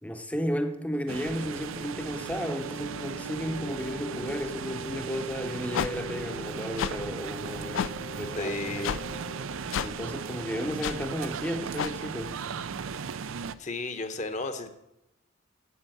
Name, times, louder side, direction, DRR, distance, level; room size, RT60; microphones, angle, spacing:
voice 1, 0.0-7.9 8.2-9.0 9.8-12.3, equal, 5° left, 0.7 m, -33 dB
sound 1, 0.9-11.1, left 2 dB, 80° left, 1.1 m, -43 dB
sound 2, 1.1-13.6, right 6 dB, 70° right, 0.4 m, -37 dB
sound 3, 5.7-5.9 6.8-6.9 7.7-7.9 8.8-9.0 9.7-9.9 10.8-11.0 11.8-11.9, left 8 dB, 65° left, 0.3 m, -29 dB
voice 2, 8.4-9.0 13.6-14.7, left 3 dB, 35° left, 0.9 m, -33 dB
8.6 x 8.2 x 7.9 m
head